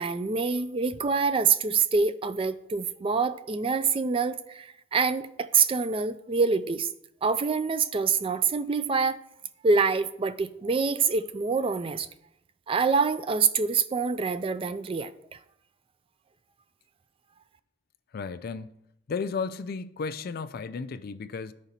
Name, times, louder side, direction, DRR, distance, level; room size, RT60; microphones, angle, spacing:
voice 1, 0.0-6.9 7.2-9.2 9.6-12.1 12.7-15.4, right 5 dB, 30° right, 0.3 m, -26 dB
voice 2, 18.1-18.8 19.1-21.5, left 5 dB, 50° left, 0.3 m, -34 dB
13.0 x 4.9 x 2.8 m
head